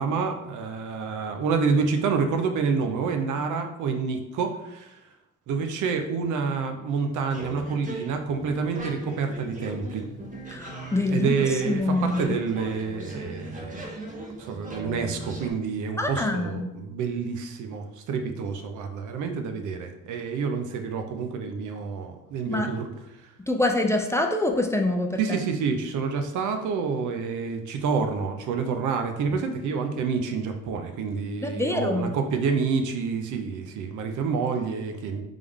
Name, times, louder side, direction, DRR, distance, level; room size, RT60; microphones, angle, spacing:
voice 1, 0.0-5.0 5.5-10.1 11.1-13.9 14.4-22.9 25.2-35.2, right 5 dB, 75° right, 6 dB, 0.6 m, -28 dB
sound 1, 7.3-15.5, right 1 dB, 25° right, 1.0 m, -39 dB
voice 2, 10.5-11.3 11.7-12.4 16.0-16.7 22.5-22.7 23.5-25.4 31.4-32.1, left 2 dB, 10° left, 3 dB, 0.4 m, -25 dB
3.5 x 3.3 x 3.6 m, 0.92 s
cardioid pair, 90°, 30 cm